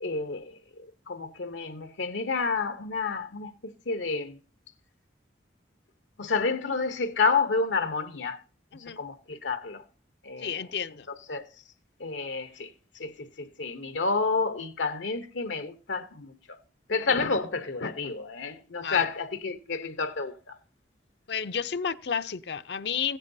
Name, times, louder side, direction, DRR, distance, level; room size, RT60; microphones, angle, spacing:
voice 1, 0.0-4.4 6.2-8.4 8.8-9.8 10.2-10.7 11.3-11.4 12.0-16.6 16.9-20.6, left 4 dB, 85° left, 0.9 m, -30 dB
voice 2, 10.4-11.1 18.8-19.0 21.3-23.2, left 7 dB, 65° left, 0.5 m, -31 dB
16.0 x 9.1 x 2.7 m
head